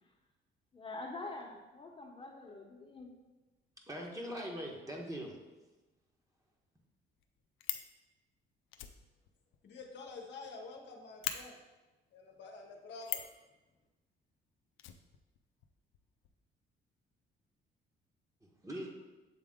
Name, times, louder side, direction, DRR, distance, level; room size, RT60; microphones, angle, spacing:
voice 1, 0.7-3.1, left 2 dB, 25° left, 1 dB, 1.1 m, -45 dB
voice 2, 3.9-5.4 18.4-18.9, equal, 15° right, -1 dB, 1.2 m, -41 dB
Fire, 6.8-6.9 7.2-7.9 8.7-10.5 10.8-10.9 11.2-11.4 13.0-13.4 14.8-15.7 15.9-16.0 16.2-16.4, left 11 dB, 85° left, 0.5 m, -40 dB
voice 3, 9.6-11.6 12.1-13.2, left 3 dB, 65° left, 1 dB, 0.9 m, -48 dB
7.6 x 3.4 x 3.7 m, 1.1 s
cardioid pair, 90°, 20 cm